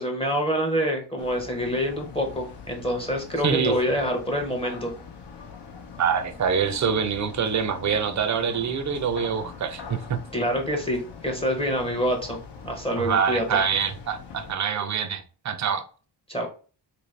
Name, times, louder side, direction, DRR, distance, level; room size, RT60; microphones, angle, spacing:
voice 1, 0.0-4.9 10.3-13.6 16.3-16.5, equal, 15° left, 0.6 m, -26 dB
sound 1, 1.2-14.5, left 5 dB, 70° left, 0.8 m, -43 dB
voice 2, 3.4-3.8 6.0-10.2 13.0-15.8, right 6 dB, 40° right, 0.5 m, -25 dB
2.9 x 2.6 x 3.1 m
cardioid pair, 105°, 43 cm